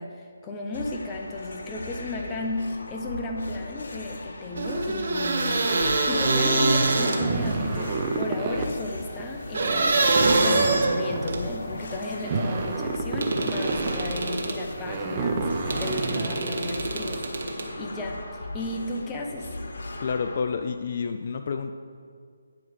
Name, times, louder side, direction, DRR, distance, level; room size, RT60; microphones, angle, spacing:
voice 1, 0.0-10.1 10.4-19.6, left 2 dB, 15° left, 2 dB, 0.7 m, -34 dB
sound 1, 0.7-20.4, left 2 dB, 65° left, 1.0 m, -38 dB
sound 2, 4.6-7.5 9.5-11.5 13.2-14.6 15.7-17.7, right 2 dB, 55° right, 1.1 m, -25 dB
sound 3, 6.8-17.2, right 3 dB, 30° right, 0.6 m, -30 dB
voice 2, 20.0-21.7, left 5 dB, 45° left, 7 dB, 0.3 m, -29 dB
9.3 x 4.8 x 4.8 m, 2.1 s
figure-of-eight pair, 160°, 0 cm